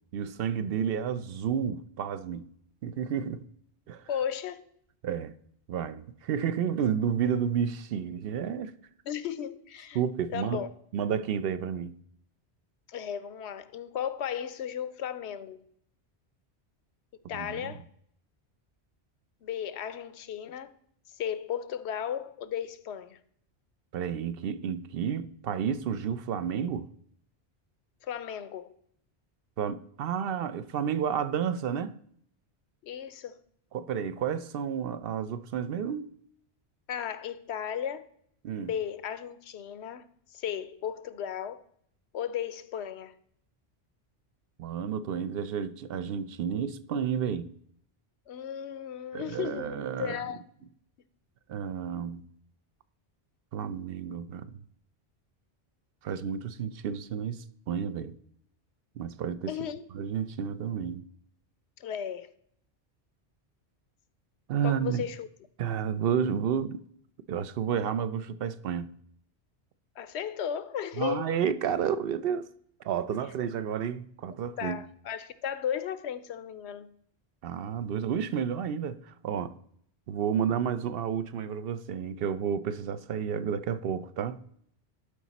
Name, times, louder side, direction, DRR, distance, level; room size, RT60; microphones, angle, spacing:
voice 1, 0.1-2.5 2.8-3.5 3.9-4.1 5.0-5.3 5.7-8.7 9.9-10.7 10.9-12.0 17.4-17.7 23.9-26.9 29.6-32.0 33.7-36.1 38.4-38.7 44.6-47.5 49.1-50.2 51.5-52.2 53.5-54.5 56.0-58.2 59.0-59.5 59.9-61.1 64.5-65.1 65.6-66.8 67.3-68.9 71.0-72.5 72.8-74.8 77.4-79.5 80.1-84.4, right 8 dB, 65° right, 0.7 m, -31 dB
voice 2, 4.1-4.7 9.0-10.0 10.3-10.7 12.9-15.6 17.3-17.8 19.4-20.7 21.1-23.2 28.0-28.7 32.8-33.4 36.9-38.1 38.6-40.0 40.3-41.6 42.1-43.1 48.3-50.4 59.5-59.8 61.8-62.3 64.6-65.3 70.0-71.3 74.6-76.9, left 9 dB, 85° left, 0.9 m, -35 dB
12.0 x 4.9 x 4.1 m
omnidirectional pair, 1.1 m